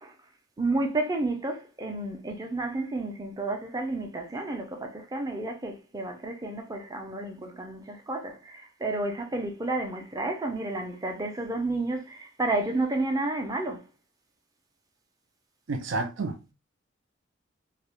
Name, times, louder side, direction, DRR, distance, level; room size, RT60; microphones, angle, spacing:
voice 1, 0.6-13.8, right 2 dB, 20° right, 0.5 m, -31 dB
voice 2, 15.7-16.5, right 3 dB, 75° right, 0.5 m, -31 dB
2.4 x 2.1 x 2.9 m
head